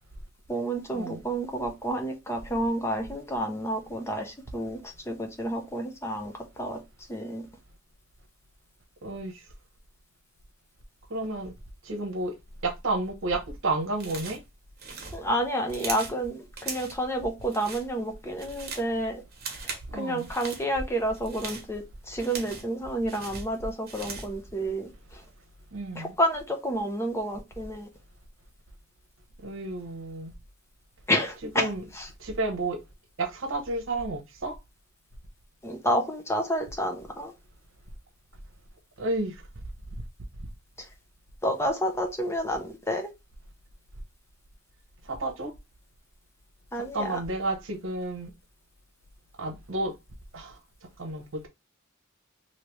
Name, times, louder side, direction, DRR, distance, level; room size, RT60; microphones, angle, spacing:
voice 1, 0.5-6.3 6.6-6.8 7.1-7.5 15.1-19.2 19.6-25.2 26.0-27.9 31.1-31.7 31.9-32.1 35.6-37.3 40.8-40.9 41.4-43.1 46.7-47.2, equal, 15° left, 0.6 m, -30 dB
voice 2, 9.0-9.5 11.1-11.5 11.8-12.4 12.6-14.4 19.9-20.3 25.7-26.2 29.4-30.3 31.5-31.8 32.2-32.8 33.2-34.6 39.0-39.4 45.0-45.5 46.7-48.3 49.4-50.0 50.3-50.6 51.0-51.5, right 2 dB, 70° right, 0.9 m, -31 dB
sound 1, 14.0-14.5 14.8-16.2 16.6-17.0 17.4-17.9 18.2-18.9 19.3-19.9 20.2-20.6 21.1-22.8 23.1-24.4, right 5 dB, 50° right, 1.0 m, -39 dB
3.2 x 2.7 x 3.0 m
head